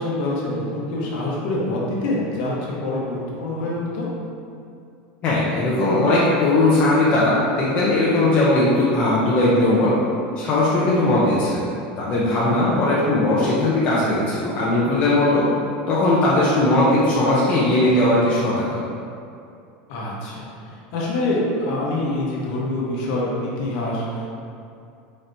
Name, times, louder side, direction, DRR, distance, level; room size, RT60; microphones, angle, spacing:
voice 1, 0.0-4.1 12.4-12.7 19.9-24.3, left 2 dB, 50° left, -4 dB, 0.8 m, -26 dB
voice 2, 5.2-9.9 10.4-11.7 12.0-15.5 15.9-18.8, left 2 dB, 30° left, -7 dB, 0.5 m, -19 dB
4.1 x 3.2 x 2.6 m, 2.5 s
supercardioid pair, 170°, 5 cm